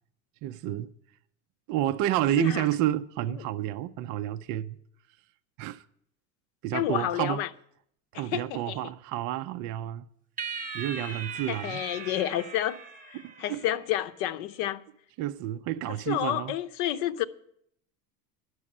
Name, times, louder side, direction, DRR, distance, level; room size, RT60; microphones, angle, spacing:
voice 1, 0.4-0.9 1.7-4.8 5.6-5.8 6.6-7.4 8.1-10.1 10.7-11.8 13.1-13.7 15.2-16.5, right 13 dB, 40° right, 0.5 m, -30 dB
voice 2, 6.7-7.5 8.1-8.8 11.5-12.8 13.1-14.8 15.9-17.2, left 12 dB, 60° left, 0.8 m, -30 dB
sound 1, 10.4-13.9, right 5 dB, 15° right, 0.9 m, -39 dB
11.0 x 6.3 x 8.5 m
supercardioid pair, 120°, 48 cm